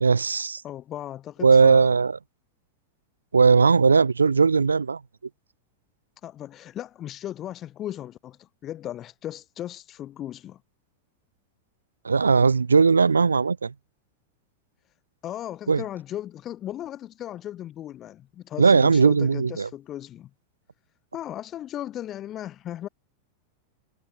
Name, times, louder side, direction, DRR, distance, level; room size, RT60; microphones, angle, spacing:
voice 1, 0.0-0.6 1.4-2.1 3.3-5.0 12.0-13.7 15.7-15.8 18.6-19.7, right 5 dB, 75° right, 0.8 m, -18 dB
voice 2, 0.6-1.9 6.2-10.6 15.2-20.3 21.1-22.9, left 12 dB, 30° left, 1.4 m, -36 dB
figure-of-eight pair, 90°, 0 cm